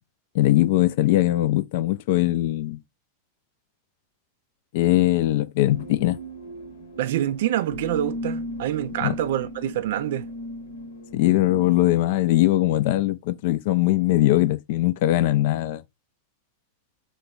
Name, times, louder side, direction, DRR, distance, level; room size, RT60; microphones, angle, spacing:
voice 1, 0.3-2.8 4.7-6.2 9.0-9.2 11.1-15.8, left 15 dB, 50° left, 0.3 m, -21 dB
sound 1, 5.7-11.8, equal, 70° left, 0.8 m, -36 dB
voice 2, 7.0-10.3, right 12 dB, 55° right, 0.3 m, -26 dB
3.2 x 2.2 x 4.3 m
figure-of-eight pair, 90°, 0 cm